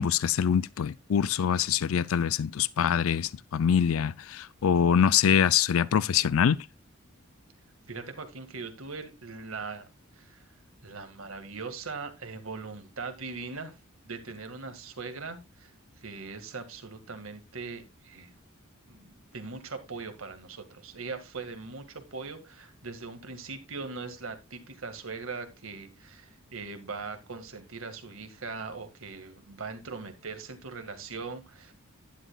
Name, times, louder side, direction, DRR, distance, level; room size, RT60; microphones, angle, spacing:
voice 1, 0.0-6.6, left 8 dB, 70° left, 0.4 m, -24 dB
voice 2, 7.9-9.9 10.1-10.4 10.8-13.8 14.1-18.3 18.9-31.7, right 4 dB, 65° right, 1.8 m, -40 dB
11.5 x 10.0 x 2.3 m
head